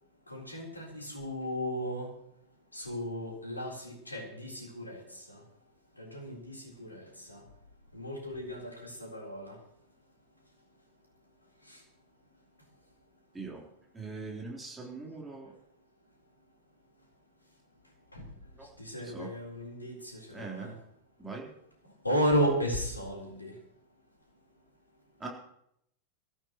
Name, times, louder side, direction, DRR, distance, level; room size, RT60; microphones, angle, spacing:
voice 1, 0.3-2.1 2.7-5.0 5.3-5.4 6.0-7.4 7.9-9.5 18.1-18.2 18.8-20.7 22.0-23.5, equal, 85° left, -1 dB, 4.1 m, -34 dB
voice 2, 13.9-15.5 18.6-18.7 19.0-19.3 20.3-20.7 21.2-21.5 25.2-25.3, right 3 dB, 10° right, -2 dB, 3.9 m, -41 dB
22.5 x 14.0 x 3.1 m, 0.74 s
figure-of-eight pair, 90°, 0 cm